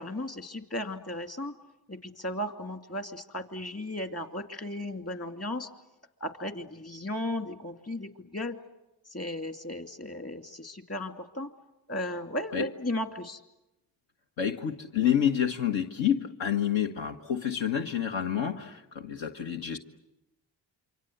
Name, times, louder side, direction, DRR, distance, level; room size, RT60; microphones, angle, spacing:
voice 1, 0.0-1.5 1.9-5.7 6.2-8.6 9.1-11.5 11.9-13.4, left 1 dB, 30° left, 6 dB, 2.7 m, -35 dB
voice 2, 14.4-19.8, left 9 dB, 75° left, 4 dB, 1.5 m, -28 dB
28.0 x 24.5 x 8.0 m, 0.94 s
cardioid pair, 55°, 46 cm